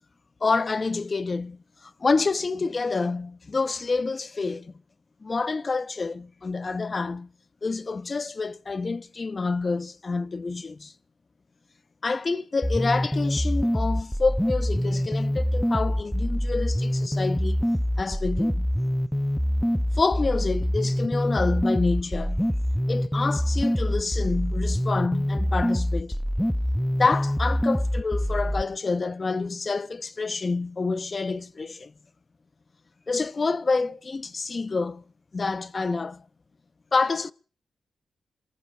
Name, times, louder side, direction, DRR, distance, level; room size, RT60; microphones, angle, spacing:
voice 1, 0.4-4.7 5.2-7.3 7.6-10.9 12.0-17.6 18.0-18.7 20.0-22.4 22.9-26.2 27.0-31.9 33.1-35.0 35.3-36.2 36.9-37.3, left 4 dB, 40° left, 0.9 m, -27 dB
sound 1, 12.6-28.6, equal, ahead, 0.9 m, -25 dB
27.5 x 14.5 x 3.4 m
cardioid pair, 75°, 0 cm